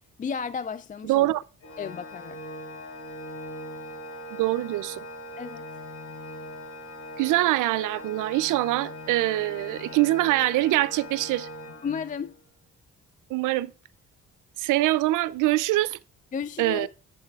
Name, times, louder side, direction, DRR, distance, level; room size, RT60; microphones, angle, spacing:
voice 1, 0.2-1.3 1.8-2.4 5.4-5.7 11.8-12.4 16.3-16.9, left 6 dB, 25° left, 0.4 m, -33 dB
voice 2, 1.1-1.4 4.3-5.0 7.2-11.5 13.3-13.7 14.6-16.0 16.6-16.9, right 17 dB, 85° right, 0.5 m, -24 dB
Organ, 1.6-12.4, equal, 55° left, 4.7 m, -40 dB
11.5 x 7.5 x 2.4 m
cardioid pair, 90°, 30 cm